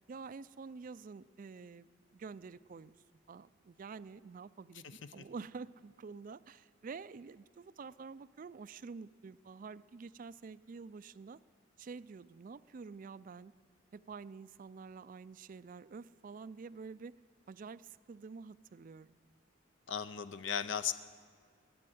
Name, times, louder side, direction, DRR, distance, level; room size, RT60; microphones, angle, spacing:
voice 1, 0.1-3.0 3.3-11.4 11.8-13.5 13.9-17.1 17.5-19.2, right 4 dB, 40° right, 17 dB, 0.3 m, -48 dB
voice 2, 19.9-20.9, left 8 dB, 60° left, 12 dB, 0.5 m, -36 dB
21.0 x 8.6 x 7.9 m, 2.1 s
head